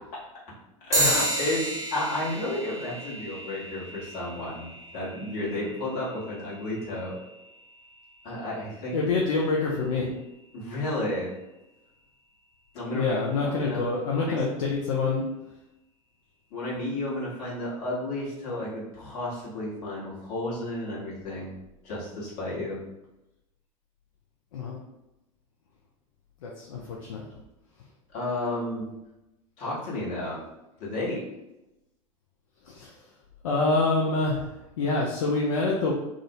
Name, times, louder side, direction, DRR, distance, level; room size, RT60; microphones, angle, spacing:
voice 1, 0.8-7.1 8.2-9.0 10.5-11.3 12.7-13.2 13.4-13.8 14.2-14.4 16.5-21.5 21.8-22.8 28.1-28.9 29.6-30.4 30.8-31.3, left 1 dB, 55° left, -6 dB, 1.1 m, -32 dB
sound 1, 0.9-10.7, right 1 dB, 15° right, 0.8 m, -34 dB
voice 2, 8.9-10.1 12.9-15.2 24.5-24.8 26.4-27.2 32.7-32.9 33.4-34.5 34.8-35.9, left 3 dB, 70° left, -2 dB, 0.4 m, -26 dB
2.4 x 2.0 x 2.7 m, 0.94 s
figure-of-eight pair, 75°, 18 cm